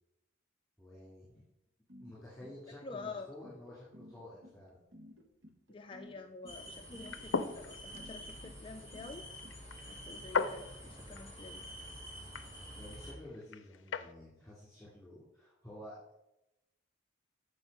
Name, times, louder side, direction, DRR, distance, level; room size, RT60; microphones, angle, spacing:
voice 1, 0.8-1.3 2.0-4.8 12.7-16.0, left 1 dB, 5° left, -8 dB, 2.3 m, -51 dB
sound 1, 1.9-9.5, left 1 dB, 70° right, 1.3 m, -54 dB
voice 2, 2.8-3.3 5.7-9.3 9.9-11.7, left 4 dB, 25° left, 5 dB, 0.4 m, -48 dB
sound 2, 6.5-13.1, equal, 15° right, 2.4 m, -48 dB
sound 3, 7.0-14.1, left 5 dB, 75° left, 0.5 m, -40 dB
7.9 x 5.2 x 5.3 m, 0.90 s
head